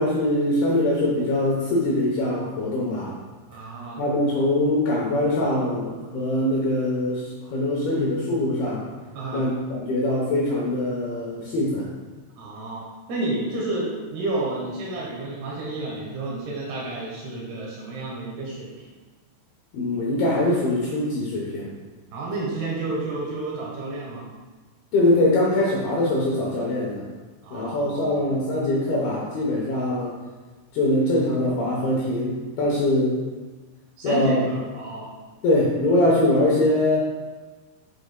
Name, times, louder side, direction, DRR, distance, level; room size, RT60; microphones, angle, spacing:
voice 1, 0.0-3.2 4.0-8.9 9.3-9.5 9.8-11.9 19.7-21.7 24.9-27.0 27.5-30.1 30.7-33.1 34.0-34.4 35.4-37.0, left 1 dB, 75° left, -4 dB, 2.4 m, -22 dB
voice 2, 3.5-4.1 9.1-9.5 12.4-18.8 22.1-24.3 27.4-28.3 34.0-35.1, right 2 dB, 70° right, -4 dB, 2.8 m, -31 dB
8.1 x 7.0 x 2.2 m, 1.3 s
omnidirectional pair, 5.5 m